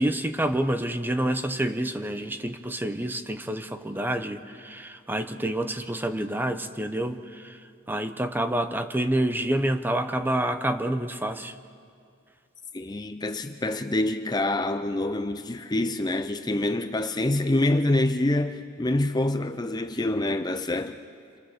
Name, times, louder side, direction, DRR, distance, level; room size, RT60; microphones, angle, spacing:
voice 1, 0.0-7.6 7.9-11.5, right 1 dB, 10° right, 0.8 m, -28 dB
voice 2, 12.7-21.0, left 1 dB, 20° left, 0.5 m, -26 dB
29.0 x 25.0 x 7.2 m
head